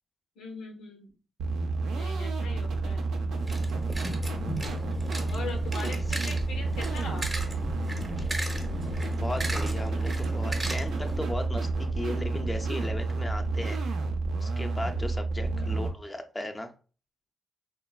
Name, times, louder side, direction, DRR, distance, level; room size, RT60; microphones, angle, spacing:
voice 1, 0.4-1.1 1.9-3.1 5.3-7.3 15.5-15.7, left 4 dB, 80° left, 3 dB, 0.5 m, -41 dB
sound 1, 1.4-15.9, right 3 dB, 80° right, 0.4 m, -30 dB
sound 2, 3.3-11.2, right 1 dB, 25° right, 0.7 m, -37 dB
voice 2, 5.8-6.2 8.2-8.3 9.1-13.8 14.4-16.7, left 1 dB, 20° left, 5 dB, 0.4 m, -36 dB
3.2 x 2.1 x 2.2 m, 0.37 s
supercardioid pair, 55°, 0 cm